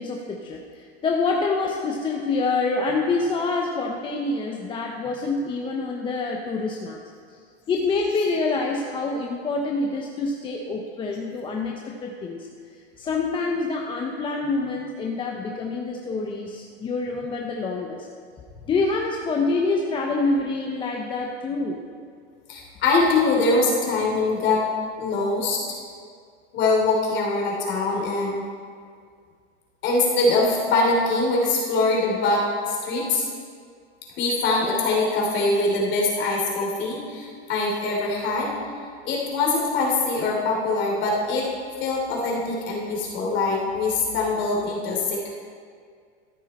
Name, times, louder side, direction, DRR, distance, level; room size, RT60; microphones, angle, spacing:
voice 1, 0.0-7.0 7.7-12.5 13.0-18.1 18.7-21.8, left 3 dB, 15° left, 1 dB, 0.6 m, -26 dB
voice 2, 22.5-24.6 25.0-25.6 26.5-28.4 29.8-33.2 34.1-38.6 39.0-41.5 41.8-45.3, left 3 dB, 35° left, -2 dB, 3.0 m, -23 dB
13.5 x 9.7 x 4.2 m, 2.1 s
supercardioid pair, 145°, 33 cm